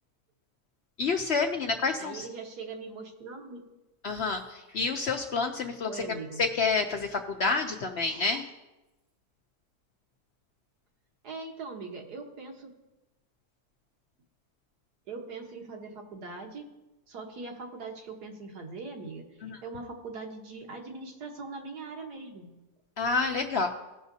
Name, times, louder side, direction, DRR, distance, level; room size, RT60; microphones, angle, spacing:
voice 1, 1.0-2.3 4.0-8.5 19.4-19.6 23.0-23.7, left 4 dB, 60° left, 3 dB, 0.7 m, -29 dB
voice 2, 2.0-3.6 5.8-6.4 11.2-12.7 15.1-16.6 17.1-19.2 19.6-22.5, right 4 dB, 90° right, 1 dB, 1.8 m, -41 dB
17.5 x 6.0 x 2.7 m, 1.0 s
omnidirectional pair, 1.7 m